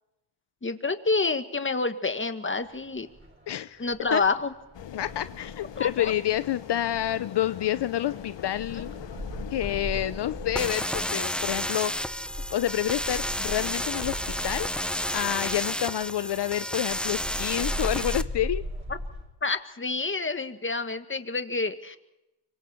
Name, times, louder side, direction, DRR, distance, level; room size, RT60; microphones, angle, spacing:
voice 1, 0.6-3.1 3.8-4.5 5.8-6.1 8.7-8.8 18.9-19.0 19.4-22.0, left 3 dB, 30° left, 9 dB, 1.8 m, -28 dB
sound 1, 2.6-19.3, equal, 25° right, 6.4 m, -39 dB
voice 2, 3.5-3.8 4.1-4.2 4.9-8.9 9.5-12.1 12.5-14.7 15.1-18.6, left 12 dB, 70° left, 14 dB, 0.7 m, -28 dB
sound 2, 4.7-10.8, left 10 dB, 85° left, 1.1 m, -41 dB
sound 3, 10.6-18.2, equal, ahead, 0.6 m, -31 dB
25.0 x 24.5 x 4.5 m, 0.91 s
cardioid pair, 80°, 43 cm